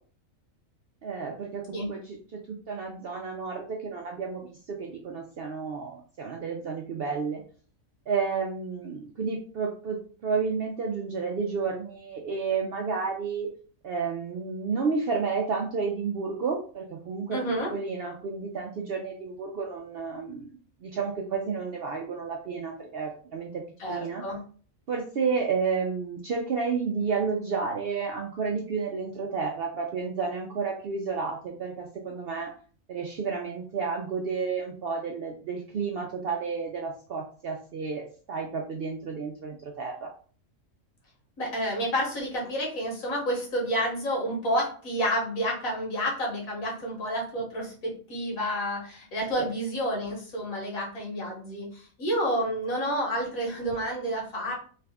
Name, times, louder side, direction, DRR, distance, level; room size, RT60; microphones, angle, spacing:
voice 1, 1.0-7.4 8.1-13.5 13.8-17.4 17.7-24.2 24.9-32.5 32.9-40.1 49.4-49.5, right 5 dB, 60° right, 1 dB, 0.6 m, -31 dB
voice 2, 17.3-17.7 23.8-24.4 41.4-54.5, equal, 85° left, -2 dB, 1.7 m, -30 dB
3.4 x 2.4 x 3.3 m, 0.42 s
omnidirectional pair, 1.4 m